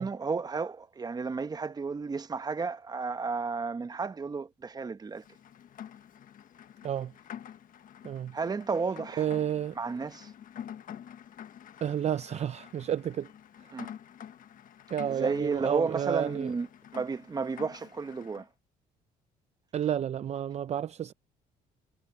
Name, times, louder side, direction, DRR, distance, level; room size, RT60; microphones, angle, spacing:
voice 1, 0.0-5.2 8.3-9.3 9.8-10.3 13.7-13.9 15.0-16.7 16.9-18.5, right 4 dB, 25° right, 1.0 m, -32 dB
Rain, 5.1-18.5, left 9 dB, 55° left, 1.3 m, -48 dB
voice 2, 9.2-9.8 11.8-13.3 14.9-16.5 19.7-21.1, right 9 dB, 40° right, 0.6 m, -31 dB
cardioid pair, 110°, 17 cm